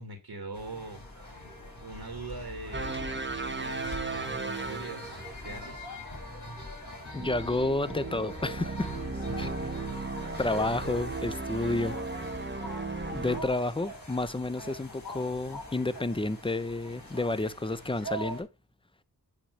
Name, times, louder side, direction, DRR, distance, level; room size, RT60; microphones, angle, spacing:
voice 1, 0.0-1.5 1.8-3.0 3.6-5.9 9.1-9.7, right 2 dB, 65° right, 2.0 m, -42 dB
sound 1, 0.5-18.4, left 1 dB, 40° left, 5.4 m, -43 dB
sound 2, 2.7-5.4 7.1-13.4, right 3 dB, 25° right, 1.2 m, -36 dB
voice 2, 7.1-8.9 9.4-9.5 10.4-12.0 13.1-18.5, left 2 dB, 15° left, 0.6 m, -30 dB
8.8 x 3.2 x 6.2 m
cardioid pair, 40°, 42 cm